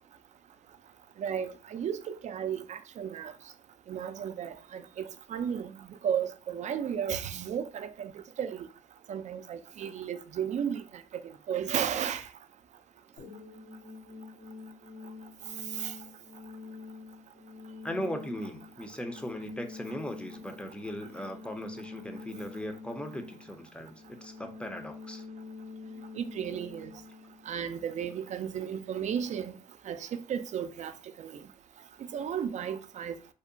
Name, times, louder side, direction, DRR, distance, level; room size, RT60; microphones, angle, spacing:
voice 1, 1.2-3.3 3.9-5.0 5.3-5.7 6.0-8.1 8.4-8.7 9.1-10.8 11.5-12.3 15.8-15.9 26.2-26.9 27.5-29.5 29.9-30.9 31.2-31.3 32.1-33.2, right 8 dB, 45° right, 0.4 m, -33 dB
sound 1, 13.2-28.2, left 4 dB, 70° left, 0.8 m, -47 dB
voice 2, 17.8-25.2, equal, 5° left, 0.5 m, -38 dB
2.7 x 2.1 x 2.5 m
supercardioid pair, 60°, 16 cm